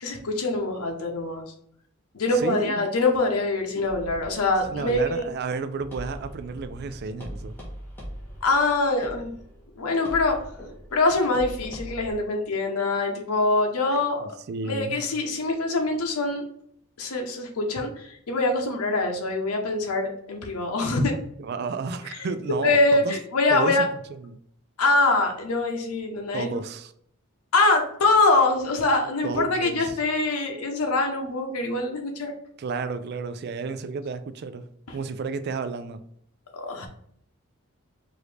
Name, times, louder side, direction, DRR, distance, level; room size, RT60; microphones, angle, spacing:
voice 1, 0.0-1.4 2.1-5.2 8.4-9.3 9.8-10.4 10.9-14.2 14.7-16.4 17.0-21.1 22.6-23.8 24.8-26.6 27.5-32.3 36.5-36.9, left 2 dB, 90° left, 0.8 m, -24 dB
voice 2, 2.3-2.8 4.7-7.6 13.9-15.0 21.4-23.2 23.5-23.8 24.1-24.4 26.3-26.9 29.2-30.0 32.6-36.0, right 4 dB, 45° right, 0.3 m, -32 dB
sound 1, 3.8-12.1, equal, 10° left, 1.1 m, -41 dB
4.8 x 2.6 x 3.2 m
head